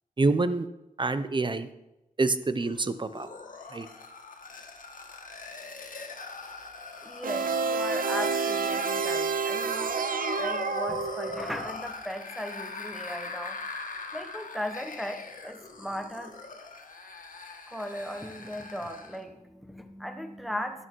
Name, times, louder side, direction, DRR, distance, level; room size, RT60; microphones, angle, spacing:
voice 1, 0.2-0.7 1.0-1.7 2.2-3.3 3.7-3.9, right 3 dB, 35° right, 12 dB, 0.9 m, -26 dB
sound 1, 2.6-19.2, left 4 dB, 70° left, 1.8 m, -41 dB
voice 2, 7.0-10.1 10.4-13.6 14.1-16.3 17.7-20.9, equal, ahead, 7 dB, 1.3 m, -37 dB
sound 2, 7.2-11.6, right 5 dB, 80° right, 0.9 m, -29 dB
11.5 x 11.5 x 4.7 m, 0.94 s
wide cardioid pair, 105°, 14 cm